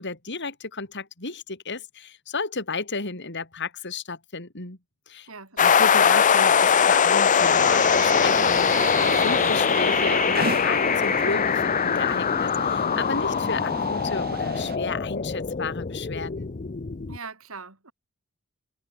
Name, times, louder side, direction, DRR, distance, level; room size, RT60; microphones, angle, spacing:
voice 1, 0.0-4.8 5.1-5.3 5.6-16.5, left 4 dB, 55° left, 4.7 m, -33 dB
voice 2, 5.3-5.9 17.1-17.9, right 4 dB, 80° right, 4.3 m, -41 dB
sound 1, 5.6-17.2, left 7 dB, 40° left, 0.6 m, -22 dB
sound 2, 7.4-14.8, right 4 dB, 45° right, 3.4 m, -33 dB
head